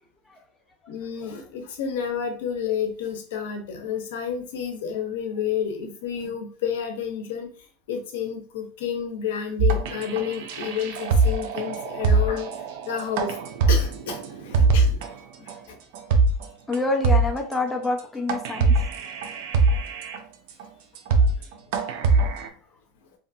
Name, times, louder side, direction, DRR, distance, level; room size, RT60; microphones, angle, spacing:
voice 1, 0.9-13.4 13.7-14.9 15.4-15.8 21.2-21.4 22.4-22.5, left 8 dB, 80° left, 4 dB, 0.6 m, -30 dB
sound 1, 9.6-15.1 15.5-15.6 15.9-16.4 16.7-16.8 17.0-17.5 18.0-18.1 18.3-20.2 20.6-20.7 21.0-21.4 21.7-22.5, right 3 dB, 70° right, 0.4 m, -22 dB
voice 2, 16.7-18.7, left 3 dB, 10° left, 1 dB, 0.5 m, -26 dB
2.5 x 2.4 x 2.5 m, 0.42 s
supercardioid pair, 145°, 0 cm